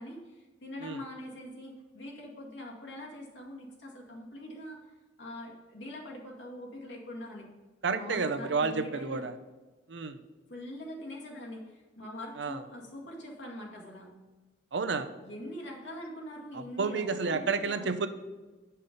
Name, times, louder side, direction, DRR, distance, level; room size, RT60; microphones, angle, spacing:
voice 1, 0.0-7.5 7.9-9.3 10.5-14.1 15.2-18.0, left 1 dB, 80° left, -1 dB, 2.1 m, -43 dB
voice 2, 7.8-9.3 9.9-10.2 12.4-12.6 14.7-15.1 16.5-18.1, right 4 dB, 70° right, 10 dB, 0.6 m, -31 dB
9.4 x 5.6 x 5.2 m, 1.2 s
head